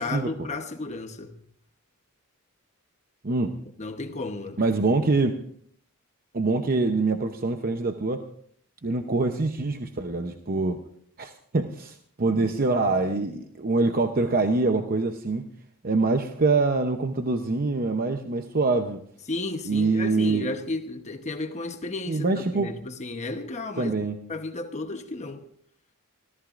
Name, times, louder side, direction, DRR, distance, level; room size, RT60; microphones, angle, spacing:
voice 1, 0.0-1.4 3.8-4.6 19.3-24.0 24.3-25.4, left 2 dB, 30° left, 1.0 m, -33 dB
voice 2, 4.6-5.4 6.3-8.2 8.8-10.8 11.2-15.4 15.8-19.0 19.7-20.5 22.1-22.7 23.8-24.2, right 3 dB, 40° right, 0.8 m, -24 dB
28.5 x 14.5 x 2.5 m
head